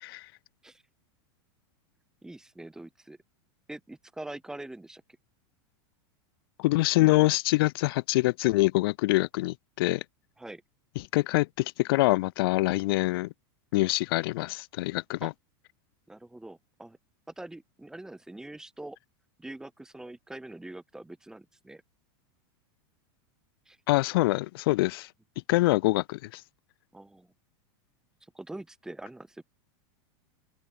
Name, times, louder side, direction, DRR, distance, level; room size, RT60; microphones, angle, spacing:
voice 1, 2.2-3.2 3.7-5.0 10.4-10.6 15.2-15.3 16.1-17.0 17.3-19.0 19.4-21.8 23.7-23.8 26.9-27.3 28.3-29.4, right 2 dB, 5° right, 5.0 m, -43 dB
voice 2, 6.6-10.0 11.0-13.3 13.7-15.3 23.9-25.1 25.5-26.4, left 20 dB, 65° left, 0.8 m, -25 dB
open air
supercardioid pair, 150°, 13 cm